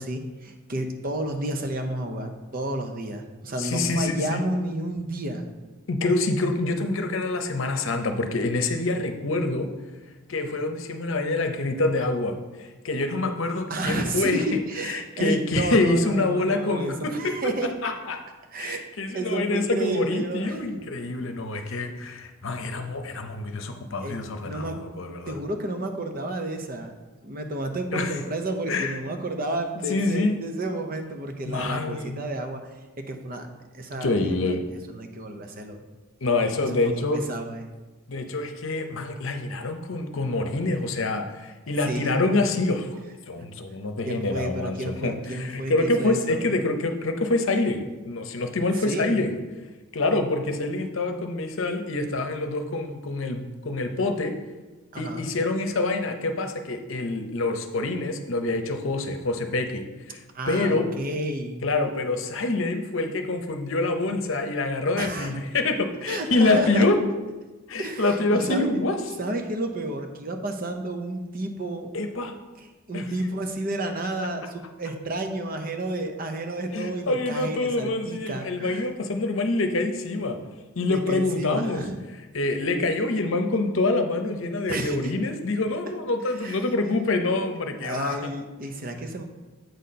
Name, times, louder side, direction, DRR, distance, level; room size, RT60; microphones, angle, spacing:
voice 1, 0.0-5.5 13.7-17.8 18.5-18.9 19.1-20.7 24.0-24.8 25.3-26.9 27.2-32.6 33.0-33.5 33.7-35.8 36.6-37.7 41.9-42.1 43.4-43.5 44.0-46.4 48.8-49.2 54.9-55.3 60.3-61.7 65.0-65.3 66.0-66.9 67.8-68.7 69.2-71.9 72.6-78.9 80.9-81.9 84.7-85.1 86.3-86.6 87.8-89.2, right 1 dB, 40° right, 5 dB, 0.7 m, -31 dB
voice 2, 3.6-4.4 5.9-9.7 10.3-18.2 18.6-25.4 27.9-28.1 28.7-29.0 29.9-30.4 31.5-32.2 34.0-34.6 36.2-37.2 38.1-42.9 43.3-49.4 49.9-54.3 55.0-60.9 61.6-67.0 67.7-69.0 71.9-72.3 72.9-73.0 76.7-80.4 80.8-81.8 82.3-88.2, left 2 dB, 65° left, 6 dB, 0.7 m, -26 dB
8.0 x 4.3 x 5.2 m, 1.2 s
head